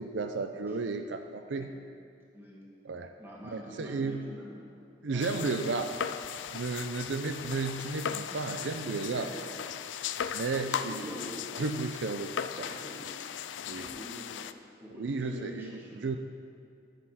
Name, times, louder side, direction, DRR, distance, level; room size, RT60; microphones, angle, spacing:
voice 1, 0.0-1.7 2.8-3.1 3.5-4.2 5.0-5.9 6.5-9.3 10.3-11.1 11.6-12.7 13.7-13.9 14.9-16.2, right 3 dB, 75° right, 6 dB, 0.5 m, -33 dB
voice 2, 3.2-4.8 5.1-5.7 8.3-9.5 10.6-11.6 12.6-13.3 13.6-16.1, equal, 10° right, -4 dB, 2.0 m, -45 dB
sound 1, 5.2-14.5, left 8 dB, 85° left, 0.4 m, -38 dB
12.5 x 6.7 x 5.8 m, 2.5 s
head